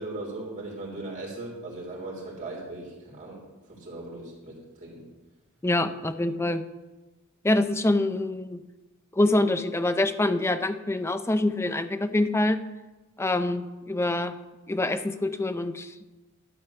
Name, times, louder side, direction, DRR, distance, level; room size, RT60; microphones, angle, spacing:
voice 1, 0.0-3.4 3.7-5.1, right 2 dB, 35° right, -3 dB, 3.7 m, -38 dB
voice 2, 5.6-6.6 7.4-8.6 9.1-12.6 13.2-14.3 14.7-15.9, left 2 dB, 10° left, 9 dB, 0.5 m, -25 dB
12.0 x 4.6 x 8.3 m, 1.1 s
head